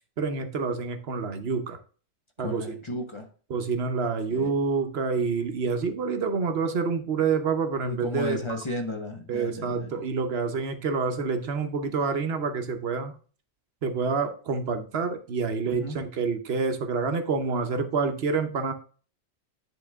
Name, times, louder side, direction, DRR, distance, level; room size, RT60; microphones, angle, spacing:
voice 1, 0.2-1.8 2.4-2.6 3.5-8.4 9.3-13.1 13.8-18.7, right 5 dB, 70° right, 7 dB, 1.0 m, -27 dB
voice 2, 2.4-3.3 4.3-4.5 7.8-10.0 15.7-16.0, left 1 dB, 30° left, 3 dB, 1.0 m, -34 dB
10.0 x 3.7 x 3.5 m, 0.39 s
omnidirectional pair, 1.1 m